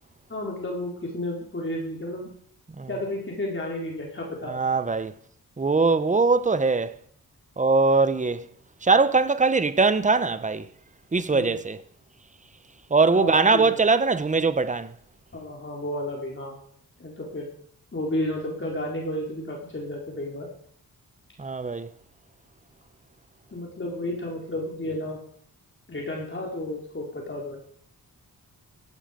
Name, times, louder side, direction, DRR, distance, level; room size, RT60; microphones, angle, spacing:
voice 1, 0.3-2.3 2.9-4.5 11.3-11.6 13.1-13.8 15.3-16.5 17.0-17.5 17.9-20.5 23.5-25.2 25.9-27.6, left 1 dB, 35° left, 4.3 m, -32 dB
voice 2, 4.5-5.1 5.6-6.9 7.6-8.4 8.8-10.6 11.1-11.8 12.9-14.9 21.4-21.9, right 4 dB, 20° right, 0.9 m, -21 dB
17.0 x 14.0 x 5.2 m
wide cardioid pair, 110°, 36 cm